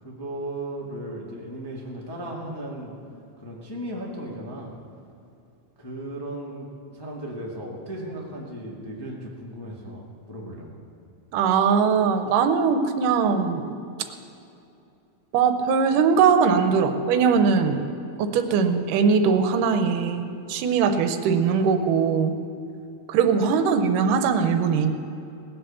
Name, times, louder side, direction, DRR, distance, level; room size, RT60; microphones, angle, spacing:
voice 1, 0.0-2.9 3.4-4.7 5.8-6.7 6.9-10.7, right 1 dB, 15° left, -3 dB, 0.9 m, -36 dB
voice 2, 11.3-13.7 15.3-17.8 18.2-22.3 23.1-24.9, right 6 dB, 90° right, 8 dB, 2.5 m, -21 dB
19.0 x 7.9 x 6.9 m, 2.7 s
omnidirectional pair, 3.6 m